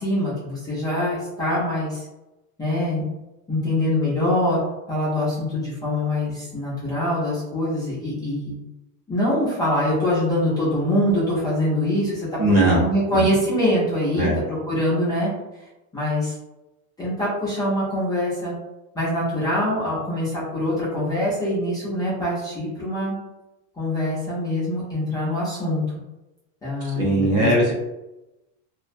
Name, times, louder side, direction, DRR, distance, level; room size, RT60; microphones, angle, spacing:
voice 1, 0.0-2.0 2.6-3.1 3.5-4.6 4.9-8.6 9.1-15.3 15.9-16.3 17.0-18.5 18.9-23.2 23.8-25.8 26.6-27.5, left 1 dB, 10° left, -10 dB, 0.5 m, -24 dB
voice 2, 12.4-12.8 13.1-13.3 14.2-14.4 26.8-27.7, right 1 dB, 40° right, -2 dB, 0.6 m, -20 dB
2.4 x 2.1 x 2.5 m, 0.97 s
cardioid pair, 165°, 40 cm